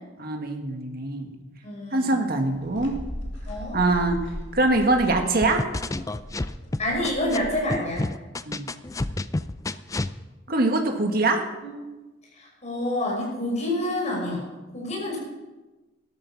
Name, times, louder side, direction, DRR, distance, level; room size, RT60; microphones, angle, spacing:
voice 1, 0.2-1.3 1.9-2.9 3.7-5.6 8.5-8.7 10.5-11.4, right 2 dB, 50° right, 4 dB, 1.8 m, -23 dB
voice 2, 1.6-2.1 3.5-3.8 6.8-8.1 11.6-11.7 12.3-14.4 14.7-15.2, left 1 dB, 35° left, -2 dB, 5.9 m, -28 dB
sound 1, 2.4-7.6, equal, 85° left, 2.4 m, -39 dB
sound 2, 5.4-7.4 7.7-10.1, left 2 dB, 15° left, 0.4 m, -29 dB
13.0 x 13.0 x 5.9 m, 1.2 s
head